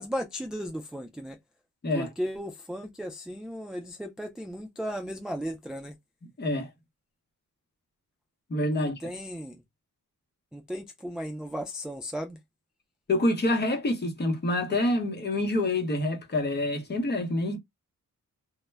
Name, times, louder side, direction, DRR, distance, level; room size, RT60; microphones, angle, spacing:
voice 1, 0.0-1.4 1.9-6.0 8.7-9.6 10.5-12.4, equal, ahead, 0.3 m, -35 dB
voice 2, 6.4-6.7 8.5-8.9 13.1-17.6, left 1 dB, 30° left, 0.8 m, -27 dB
2.1 x 2.1 x 3.2 m
cardioid pair, 115°, 32 cm